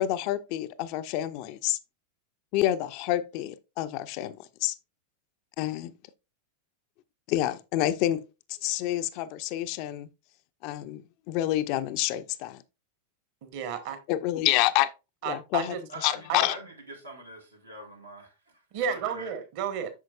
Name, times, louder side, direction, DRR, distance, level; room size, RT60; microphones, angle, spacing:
voice 1, 0.0-1.8 2.5-4.7 5.6-5.9 7.3-8.2 8.6-10.1 10.6-12.6 14.1-14.9 15.3-15.7 16.0-16.6, left 14 dB, 45° left, 0.5 m, -28 dB
voice 2, 13.4-14.0 15.2-15.8 16.3-16.5 18.7-19.9, right 7 dB, 45° right, 1.3 m, -32 dB
voice 3, 15.9-19.3, right 2 dB, 85° right, 2.0 m, -44 dB
8.3 x 6.3 x 2.4 m
figure-of-eight pair, 90°, 0 cm